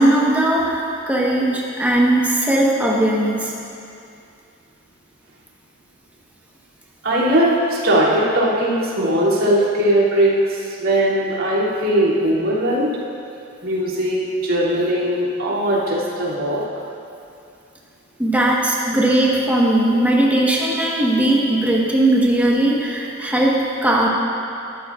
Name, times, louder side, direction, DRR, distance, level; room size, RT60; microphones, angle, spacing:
voice 1, 0.0-3.5 18.2-24.1, right 1 dB, 10° right, -4 dB, 1.3 m, -18 dB
voice 2, 7.0-12.9 13.6-16.6, right 1 dB, 80° right, -8 dB, 2.8 m, -19 dB
14.0 x 12.5 x 2.5 m, 2.6 s
head